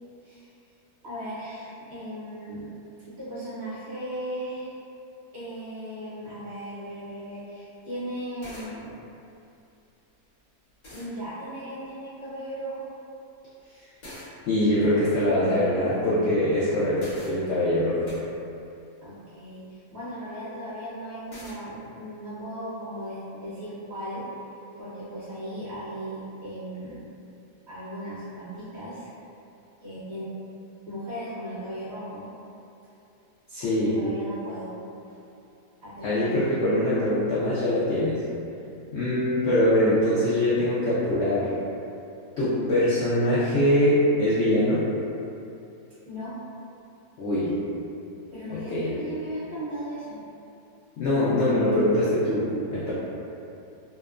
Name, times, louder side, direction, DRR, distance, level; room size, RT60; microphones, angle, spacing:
voice 1, 1.0-2.7 3.1-4.8 5.3-8.9 10.9-12.9 19.0-24.2 24.8-27.0 27.7-29.1 29.8-30.3 30.9-32.3 33.6-34.7 35.8-36.5 46.1-46.4 48.3-50.2 51.6-51.8, equal, 55° right, -12 dB, 0.8 m, -37 dB
sound 1, 7.0-7.1 8.2-8.3 8.4-8.7 10.3-10.4 10.8-11.1 14.0-14.3 17.0-17.3 18.1-18.2 21.3-21.6, equal, 60° left, 1.2 m, -43 dB
voice 2, 14.5-18.1 33.5-34.0 36.0-38.2 38.9-41.5 42.4-44.8 47.2-47.5 48.5-48.9 51.0-52.9, left 1 dB, 90° left, -10 dB, 0.6 m, -23 dB
2.8 x 2.1 x 2.3 m, 2.7 s
omnidirectional pair, 1.7 m